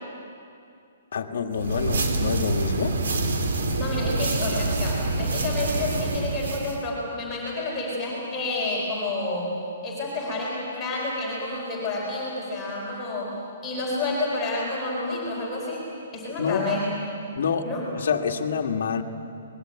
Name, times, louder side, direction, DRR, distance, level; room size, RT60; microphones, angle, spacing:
voice 1, 1.1-3.0 16.4-16.7 17.4-17.7 17.9-19.0, left 6 dB, 50° left, 3 dB, 1.8 m, -27 dB
sound 1, 1.5-6.8, right 2 dB, 65° right, 2.9 m, -26 dB
voice 2, 3.7-9.5 9.8-13.3 13.6-16.9 17.6-17.8, left 2 dB, 10° left, -5 dB, 4.3 m, -29 dB
24.5 x 20.5 x 8.7 m, 2.5 s
hypercardioid pair, 180°, 0 cm